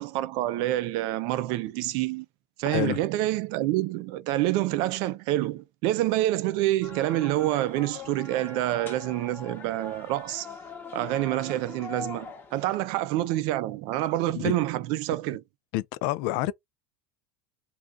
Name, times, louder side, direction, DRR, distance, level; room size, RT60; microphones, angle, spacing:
voice 1, 0.0-2.3 2.6-10.5 10.9-15.4, right 15 dB, 60° right, 0.4 m, -27 dB
voice 2, 2.6-3.0 14.3-14.6 15.7-16.5, left 16 dB, 60° left, 0.3 m, -28 dB
sound 1, 6.8-12.7, left 5 dB, 25° left, 0.9 m, -42 dB
2.4 x 2.3 x 3.7 m
supercardioid pair, 115°, 9 cm